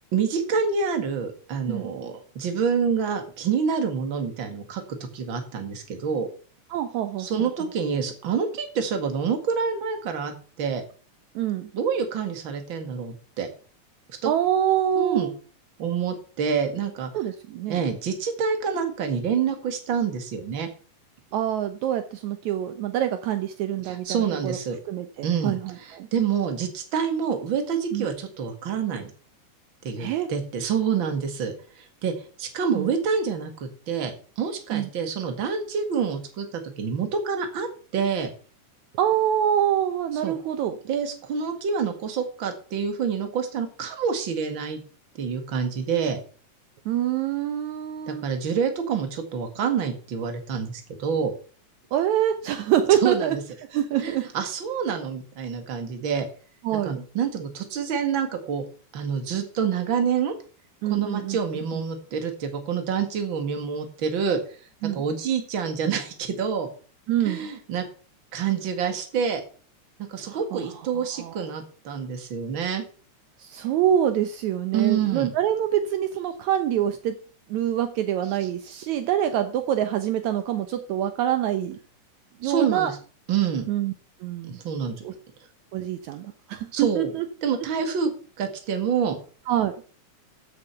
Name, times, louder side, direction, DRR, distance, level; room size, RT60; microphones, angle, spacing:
voice 1, 0.1-6.3 7.2-10.8 11.7-13.5 14.1-14.3 15.0-15.3 15.8-17.1 17.7-20.7 23.8-24.8 25.2-29.1 29.8-37.7 37.9-38.3 40.2-40.3 40.8-44.8 45.2-46.2 48.1-51.3 53.0-53.4 54.0-56.3 56.8-58.7 58.9-60.3 60.8-64.4 64.9-66.7 67.2-67.8 68.3-69.4 70.1-72.8 74.7-75.3 82.4-83.0 83.3-83.7 84.5-85.0 86.7-87.1 87.4-88.1 88.4-89.2, right 6 dB, 45° right, 6 dB, 2.4 m, -27 dB
voice 2, 6.7-7.5 11.4-11.7 14.3-15.3 17.1-17.8 21.3-24.6 24.9-26.1 27.9-28.1 30.0-30.3 32.7-32.9 34.7-34.9 38.9-40.8 46.9-48.3 51.9-53.4 53.7-54.3 56.6-57.1 60.8-61.4 61.7-61.8 64.8-65.0 67.1-67.5 70.2-71.4 73.4-77.2 77.5-81.8 82.4-82.9 83.7-83.9 84.2-84.6 85.0-85.1 85.7-87.3 87.8-87.9 89.5-89.8, right 10 dB, 75° right, 9 dB, 2.1 m, -25 dB
14.5 x 6.8 x 5.7 m, 0.40 s
omnidirectional pair, 3.5 m